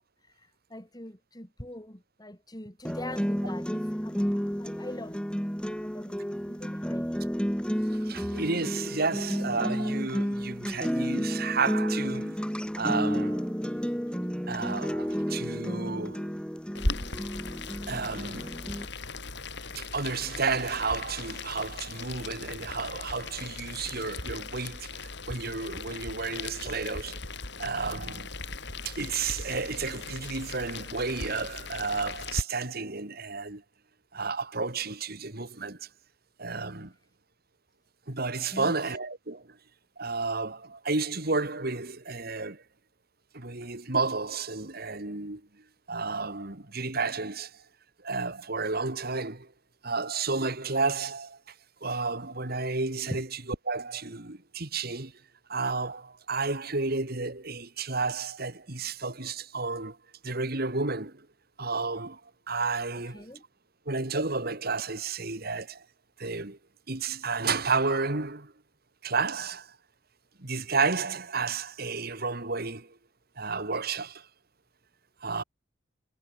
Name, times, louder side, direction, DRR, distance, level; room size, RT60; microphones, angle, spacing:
voice 1, 0.7-5.2 5.8-7.2 38.5-38.7 53.1-53.2 62.9-63.4, left 1 dB, 20° left, 7.4 m, -42 dB
sound 1, 2.8-18.8, equal, 5° left, 5.5 m, -31 dB
voice 2, 7.9-12.3 12.8-13.5 14.5-16.3 17.9-18.6 19.8-27.2 27.6-28.3 28.8-33.6 34.1-35.9 36.4-36.9 38.1-39.4 40.0-42.6 43.3-45.4 45.9-47.5 48.0-49.5 49.8-51.5 51.8-55.1 55.5-60.0 60.2-61.2 61.6-62.2 62.5-63.3 63.9-65.8 66.2-66.6 66.9-68.5 69.0-69.8 70.4-72.9 73.4-74.3 75.2-75.4, right 4 dB, 55° right, 2.7 m, -31 dB
Boiling, 16.7-32.4, left 3 dB, 65° left, 6.0 m, -38 dB
head